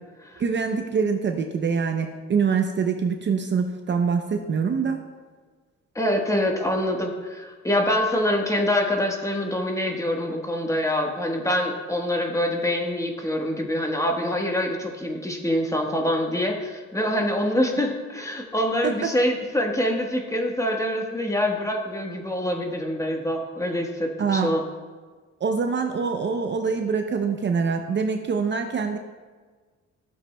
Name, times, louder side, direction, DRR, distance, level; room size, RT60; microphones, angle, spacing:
voice 1, 0.4-5.0 18.8-19.1 24.2-24.5 25.4-29.0, right 5 dB, 40° right, 5 dB, 0.6 m, -24 dB
voice 2, 5.9-24.6, left 1 dB, 10° left, 1 dB, 1.3 m, -25 dB
13.0 x 7.3 x 2.2 m, 1.4 s
cardioid pair, 90°, 30 cm